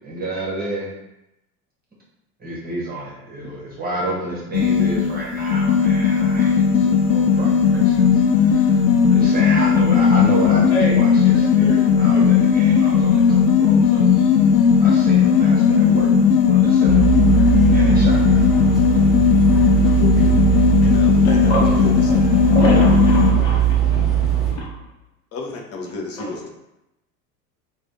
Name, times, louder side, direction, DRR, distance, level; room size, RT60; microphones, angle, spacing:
voice 1, 0.0-0.9 2.4-8.8 9.1-14.1 14.8-16.1 16.5-17.0 17.7-18.5, right 1 dB, 20° right, -5 dB, 1.2 m, -30 dB
sound 1, 4.5-23.3, left 7 dB, 85° left, 0.5 m, -16 dB
voice 2, 10.4-12.7 14.0-14.9 21.2-24.7 25.8-26.4, left 1 dB, 50° left, -2 dB, 1.1 m, -28 dB
sound 2, 16.9-24.5, right 10 dB, ahead, 0.8 m, -19 dB
voice 3, 20.8-21.5 21.8-22.2 25.3-26.5, left 3 dB, 30° left, 1 dB, 0.8 m, -32 dB
3.2 x 2.5 x 3.9 m, 0.89 s
figure-of-eight pair, 80°, 47 cm